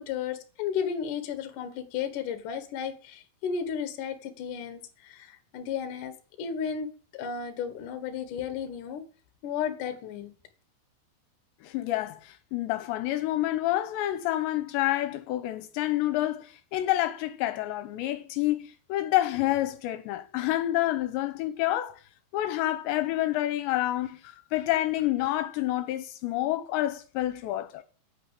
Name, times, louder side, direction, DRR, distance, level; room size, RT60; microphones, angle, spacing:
voice 1, 0.0-9.0 9.4-10.3, left 7 dB, 60° left, 2.5 m, -34 dB
voice 2, 11.6-22.0 22.3-27.8, left 15 dB, 80° left, 2.9 m, -28 dB
9.2 x 9.1 x 8.2 m
omnidirectional pair, 5.2 m